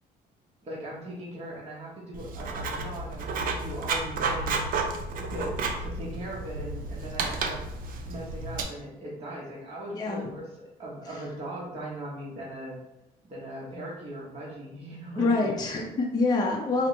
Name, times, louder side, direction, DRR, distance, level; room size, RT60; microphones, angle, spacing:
voice 1, 0.6-4.6 5.3-7.6 8.0-10.4 10.8-12.8 13.3-15.5, right 1 dB, 35° right, -5 dB, 1.0 m, -39 dB
Writing, 2.1-8.6, right 3 dB, 55° right, 0.5 m, -32 dB
voice 2, 9.9-10.3 15.2-16.9, left 3 dB, 25° left, -1 dB, 0.5 m, -26 dB
4.3 x 2.1 x 3.0 m, 0.89 s
cardioid pair, 110°, 17 cm